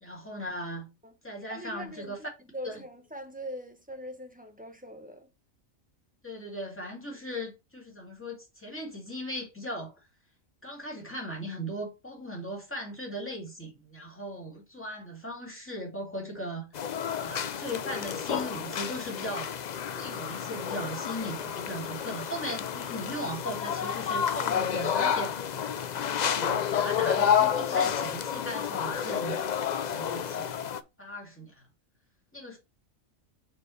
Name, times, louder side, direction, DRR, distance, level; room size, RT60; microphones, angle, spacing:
voice 1, 0.0-0.9 1.2-2.2 2.6-2.8 6.2-9.9 10.6-16.7 17.1-19.5 20.0-25.3 26.0-30.6 31.0-31.6 32.3-32.6, equal, 10° left, 2.4 m, -38 dB
voice 2, 1.5-5.3, equal, 5° right, 0.9 m, -42 dB
sound 1, 16.7-30.8, left 8 dB, 70° left, 0.4 m, -30 dB
6.9 x 4.5 x 3.2 m
omnidirectional pair, 1.4 m